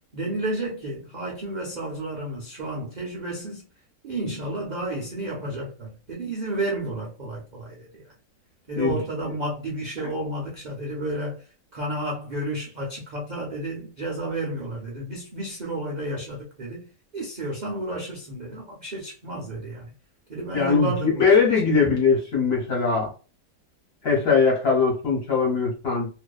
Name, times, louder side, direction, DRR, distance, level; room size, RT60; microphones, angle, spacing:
voice 1, 0.1-3.6 4.0-8.0 8.7-11.4 11.7-16.9 17.1-19.9 20.3-21.3 21.6-21.9, right 1 dB, 80° right, 0.4 m, -31 dB
voice 2, 20.5-23.1 24.0-26.1, left 5 dB, 50° left, 0.8 m, -21 dB
2.6 x 2.2 x 2.3 m
omnidirectional pair, 1.8 m